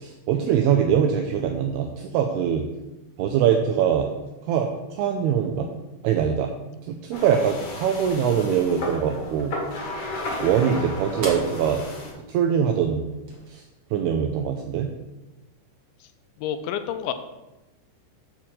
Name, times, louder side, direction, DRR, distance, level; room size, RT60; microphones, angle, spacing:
voice 1, 0.0-2.6 3.2-4.1 4.5-5.7 6.0-6.5 6.9-9.5 10.4-11.8 12.3-13.1 13.5-13.6 13.9-14.9, right 8 dB, 85° right, 3 dB, 2.3 m, -23 dB
sound 1, 7.1-12.1, left 2 dB, 55° left, 1.7 m, -34 dB
sound 2, 8.2-13.5, right 2 dB, 55° right, 1.2 m, -41 dB
voice 2, 16.4-17.1, left 9 dB, 85° left, 9 dB, 3.0 m, -28 dB
8.8 x 4.6 x 7.4 m, 1.0 s
omnidirectional pair, 5.3 m